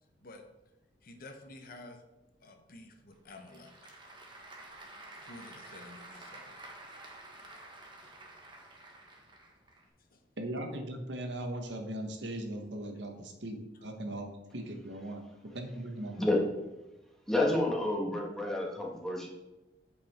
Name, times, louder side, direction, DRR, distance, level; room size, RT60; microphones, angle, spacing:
voice 1, 1.0-2.0 2.4-3.9 5.2-6.6 10.1-10.2, left 2 dB, 55° left, 5 dB, 1.1 m, -51 dB
Applause / Crowd, 3.1-9.8, right 2 dB, 25° right, 1.3 m, -50 dB
voice 2, 10.4-16.3, right 1 dB, 75° right, 4 dB, 1.3 m, -39 dB
voice 3, 17.3-19.3, left 1 dB, 5° left, -2 dB, 1.6 m, -29 dB
9.1 x 5.4 x 4.3 m, 1.0 s
head